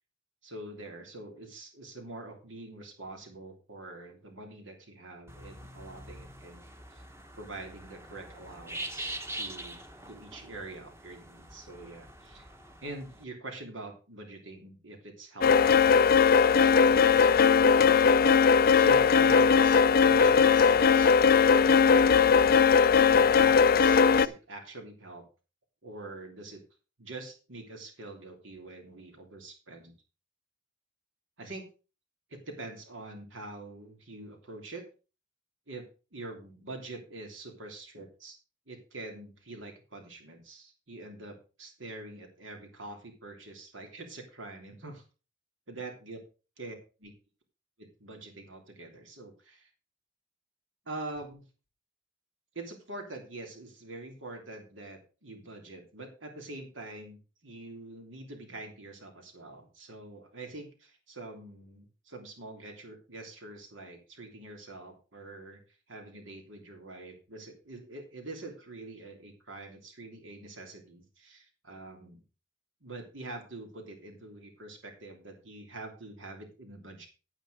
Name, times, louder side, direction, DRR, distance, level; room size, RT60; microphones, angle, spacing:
voice 1, 0.4-6.6 6.9-7.0 7.3-9.8 10.1-12.5 12.8-16.2 16.5-18.3 18.7-22.6 23.1-25.2 25.8-26.6 27.0-29.9 31.4-31.7 32.3-34.8 35.7-35.8 36.1-38.4 38.7-45.0 45.7-46.2 46.6-46.7 47.0-47.1 47.8-49.7 50.8-51.4 52.5-65.6 65.9-72.2 72.8-77.1, right 2 dB, 80° right, 3 dB, 3.1 m, -45 dB
sound 1, 5.3-13.2, right 1 dB, 15° right, 1.2 m, -44 dB
sound 2, 15.4-24.3, left 6 dB, 50° left, 0.5 m, -20 dB
9.3 x 9.0 x 5.0 m, 0.33 s
head